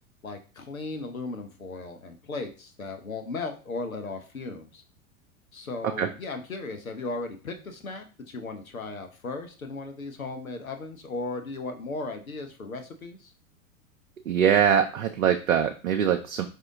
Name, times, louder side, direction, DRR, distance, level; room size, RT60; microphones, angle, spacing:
voice 1, 0.2-4.8 5.5-13.3, left 3 dB, 85° left, 5 dB, 0.9 m, -36 dB
voice 2, 14.3-16.5, right 8 dB, 80° right, 5 dB, 0.6 m, -23 dB
4.9 x 2.8 x 3.7 m, 0.35 s
figure-of-eight pair, 90°, 40 cm